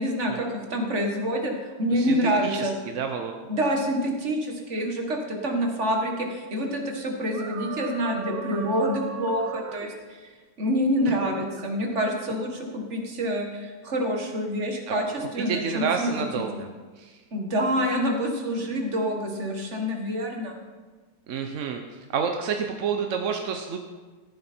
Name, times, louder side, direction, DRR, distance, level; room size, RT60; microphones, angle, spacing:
voice 1, 0.0-1.5 1.8-2.8 3.5-10.3 10.6-16.1 16.3-16.4 17.3-20.6, equal, 40° right, 2 dB, 1.9 m, -27 dB
voice 2, 1.9-2.7 2.9-3.3 14.9-16.7 17.0-17.2 21.3-21.8 22.1-23.8, right 6 dB, 55° right, 4 dB, 0.9 m, -29 dB
sound 1, 7.3-9.9 11.0-11.7 12.3-12.5, right 6 dB, 75° right, 1.5 m, -37 dB
14.5 x 11.0 x 4.4 m, 1.4 s
omnidirectional pair, 2.0 m